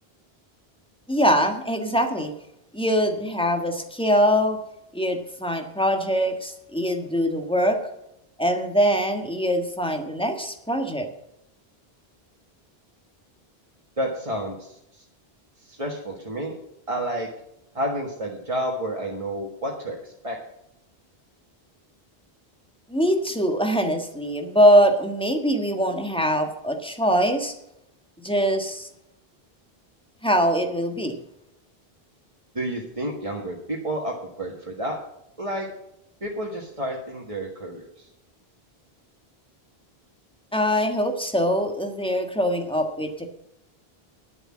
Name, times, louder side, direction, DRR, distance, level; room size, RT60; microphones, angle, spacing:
voice 1, 1.1-2.3 2.7-4.6 4.9-7.8 8.4-11.1 22.9-27.5 28.2-28.9 30.2-31.2 40.5-43.3, equal, 5° left, 5 dB, 1.6 m, -23 dB
voice 2, 14.0-15.0 15.7-16.5 16.9-17.3 17.7-20.4 32.5-35.0 35.4-35.7 36.2-38.1, right 1 dB, 35° right, -2 dB, 1.7 m, -30 dB
10.5 x 7.9 x 7.5 m, 0.80 s
omnidirectional pair, 1.0 m